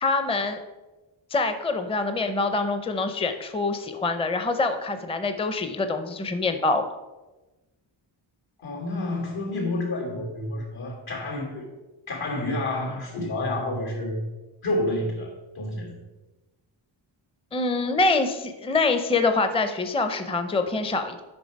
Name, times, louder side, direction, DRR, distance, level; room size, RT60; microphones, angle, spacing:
voice 1, 0.0-0.6 1.3-6.8 17.5-21.2, left 3 dB, 10° left, 8 dB, 0.5 m, -25 dB
voice 2, 8.6-11.6 12.1-14.2 14.6-15.3 15.5-15.9, left 2 dB, 80° left, -1 dB, 3.1 m, -29 dB
8.7 x 5.5 x 5.3 m, 1.1 s
wide cardioid pair, 110°, 48 cm